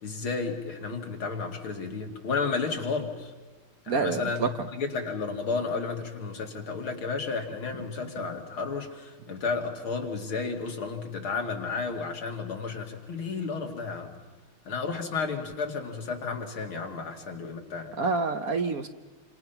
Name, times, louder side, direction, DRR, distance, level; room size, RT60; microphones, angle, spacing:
voice 1, 0.0-3.3 3.8-14.2 14.6-18.0, left 4 dB, 80° left, 3 dB, 3.2 m, -32 dB
voice 2, 3.9-4.5 18.0-18.9, right 4 dB, 55° right, 8 dB, 1.1 m, -27 dB
28.5 x 26.5 x 5.9 m, 1.3 s
omnidirectional pair, 2.3 m